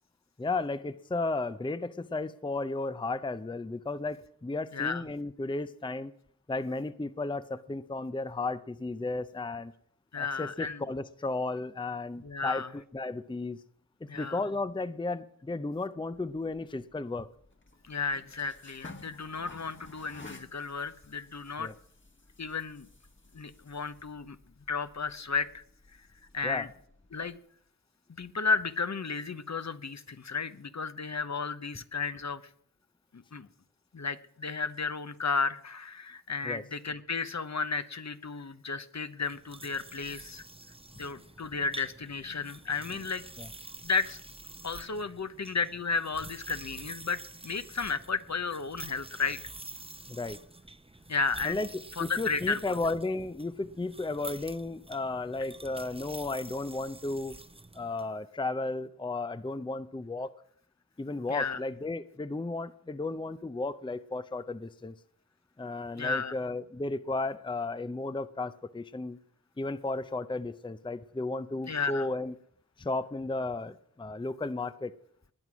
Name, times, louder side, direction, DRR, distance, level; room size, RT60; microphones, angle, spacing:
voice 1, 0.4-6.1 6.5-9.7 10.2-13.6 14.1-17.3 21.6-21.7 26.4-26.7 36.4-36.6 43.4-43.5 50.1-50.4 51.4-51.7 52.0-57.4 57.7-60.3 61.0-64.9 65.6-69.2 69.6-72.3 72.8-74.9, left 2 dB, 15° left, 13 dB, 0.6 m, -34 dB
voice 2, 4.7-5.0 10.1-10.8 12.2-12.7 14.1-14.4 17.9-21.7 22.4-22.9 23.3-24.4 24.7-25.6 26.3-26.7 27.1-27.4 28.2-32.4 33.1-33.5 33.9-40.4 41.0-43.2 43.8-44.2 44.6-49.4 51.1-51.6 52.0-52.7 61.3-61.6 66.0-66.3 71.7-72.1, left 4 dB, 50° left, 12 dB, 0.9 m, -33 dB
sound 1, 16.1-27.4, left 2 dB, 35° left, 1.5 m, -54 dB
sound 2, 39.2-58.1, right 2 dB, 15° right, 0.8 m, -48 dB
20.0 x 9.3 x 6.1 m, 0.65 s
wide cardioid pair, 75°, 35 cm